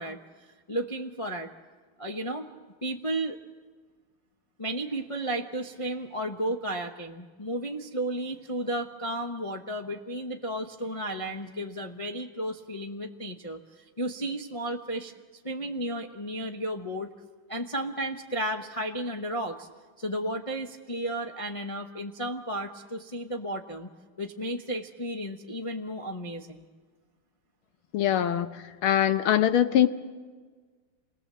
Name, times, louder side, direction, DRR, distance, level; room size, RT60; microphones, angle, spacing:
voice 1, 0.0-1.5 2.0-2.5 2.8-3.4 4.6-15.1 15.4-17.1 17.5-19.7 20.0-23.9 24.2-26.7, right 1 dB, 45° left, 3 dB, 0.4 m, -33 dB
voice 2, 27.9-28.5 28.8-29.9, left 10 dB, 80° left, 11 dB, 1.8 m, -22 dB
28.0 x 20.0 x 7.6 m, 1.5 s
omnidirectional pair, 2.3 m